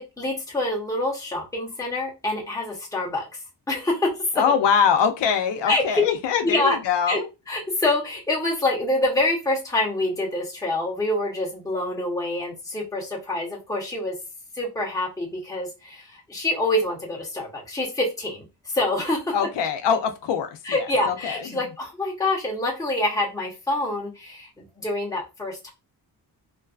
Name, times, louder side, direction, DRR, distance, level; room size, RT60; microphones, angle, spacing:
voice 1, 0.2-3.2 3.7-3.9 5.7-6.0 6.4-6.8 7.1-7.2 7.5-14.1 14.6-15.7 16.3-18.4 18.8-19.2 20.6-24.4 24.8-25.7, left 2 dB, 10° left, 0.8 m, -26 dB
voice 2, 4.4-7.3 19.3-21.4, left 7 dB, 85° left, 0.5 m, -23 dB
2.6 x 2.2 x 2.3 m
wide cardioid pair, 160°, 42 cm